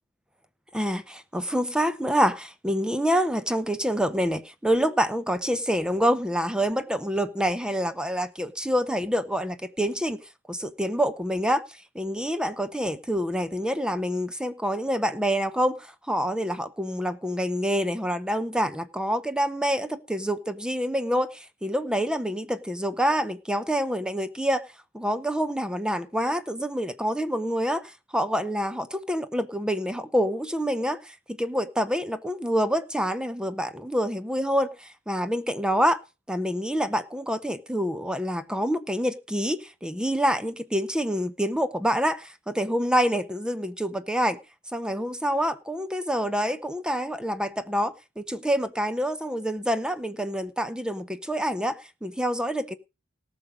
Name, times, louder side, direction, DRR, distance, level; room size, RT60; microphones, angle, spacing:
voice 1, 0.7-10.2 10.5-24.6 24.9-36.0 36.3-44.4 44.7-52.7, equal, 5° right, 0.7 m, -27 dB
18.0 x 6.4 x 5.0 m
head